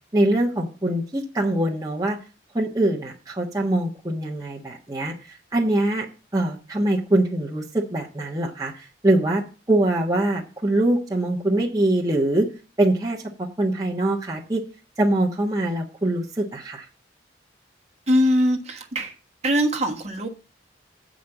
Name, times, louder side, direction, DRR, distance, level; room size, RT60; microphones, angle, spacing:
voice 1, 0.1-2.2 2.5-5.1 5.5-6.1 6.3-9.4 9.7-12.5 12.8-14.6 15.0-16.9, right 1 dB, 20° right, 1.2 m, -23 dB
voice 2, 18.1-19.1 19.4-20.3, equal, 35° right, 1.4 m, -21 dB
8.4 x 5.2 x 7.1 m
head